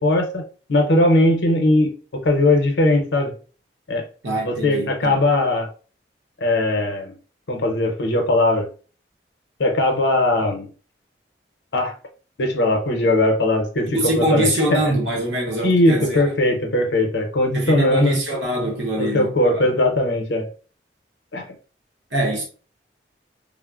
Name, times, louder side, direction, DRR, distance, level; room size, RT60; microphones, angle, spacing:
voice 1, 0.0-0.4 0.7-3.3 3.9-4.0 4.4-5.7 6.4-7.1 7.5-8.7 9.6-10.7 11.7-11.9 12.4-14.8 15.6-18.1 19.0-20.5 21.3-21.5, left 1 dB, 75° left, 0.6 m, -19 dB
voice 2, 4.2-5.2 13.9-16.3 17.5-19.6 22.1-22.4, right 1 dB, 90° right, 0.8 m, -24 dB
3.5 x 2.0 x 2.3 m
head